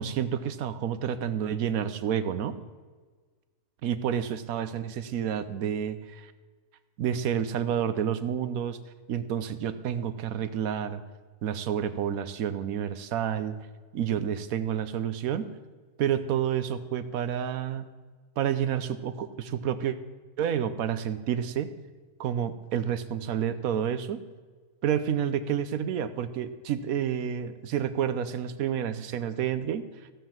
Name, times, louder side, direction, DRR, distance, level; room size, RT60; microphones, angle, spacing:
voice 1, 0.0-2.5 3.8-6.3 7.0-8.8 9.1-11.0 11.4-13.6 13.9-15.5 16.0-17.9 18.4-20.0 20.4-21.7 22.2-24.2 24.8-29.9, right 9 dB, 70° right, 12 dB, 1.1 m, -29 dB
15.0 x 5.7 x 7.2 m, 1.4 s
omnidirectional pair, 1.6 m